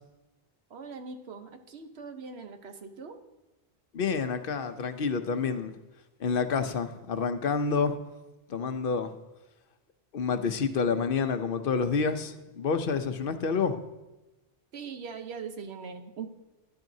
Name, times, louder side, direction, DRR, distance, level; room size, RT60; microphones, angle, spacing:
voice 1, 0.7-3.2 14.7-16.3, right 5 dB, 90° right, 6 dB, 1.2 m, -41 dB
voice 2, 3.9-5.8 6.2-8.0 8.5-9.2 10.1-13.8, left 5 dB, 65° left, 9 dB, 0.8 m, -28 dB
12.0 x 10.5 x 2.7 m, 1.0 s
omnidirectional pair, 1.0 m